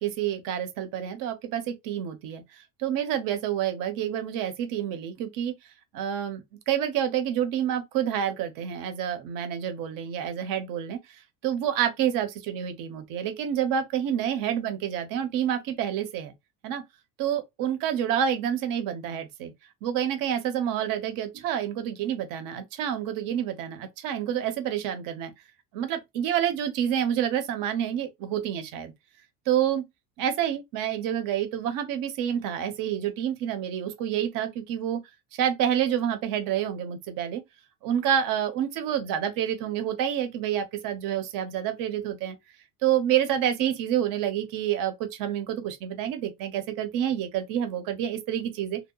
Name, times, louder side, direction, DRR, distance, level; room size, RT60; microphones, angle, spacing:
voice 1, 0.0-2.4 2.8-5.5 5.9-11.0 11.4-16.3 16.6-16.8 17.2-19.5 19.8-25.3 25.7-28.9 29.5-29.8 30.2-35.0 35.4-37.4 37.8-42.4 42.8-48.8, right 10 dB, 65° right, 0.7 m, -28 dB
2.8 x 2.1 x 2.2 m
cardioid pair, 140°, 36 cm